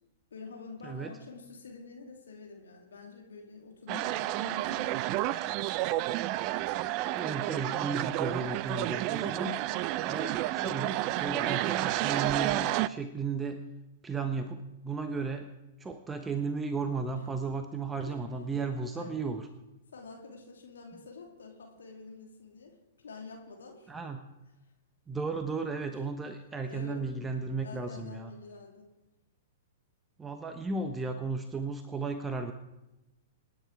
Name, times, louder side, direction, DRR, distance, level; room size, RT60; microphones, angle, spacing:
voice 1, 0.3-5.1 17.1-17.2 18.0-18.3 18.8-19.2 19.9-24.1 25.9-26.0 26.4-27.0 27.6-28.9 30.6-30.7, left 4 dB, 70° left, 1 dB, 2.9 m, -47 dB
sound 1, 3.9-12.9, right 16 dB, 40° right, 0.5 m, -31 dB
voice 2, 7.2-9.6 10.1-13.6 14.0-15.5 15.8-19.5 23.9-24.2 25.1-28.3 30.2-32.5, right 4 dB, 15° right, 7 dB, 1.0 m, -34 dB
27.0 x 10.0 x 4.7 m, 0.99 s
figure-of-eight pair, 105°, 0 cm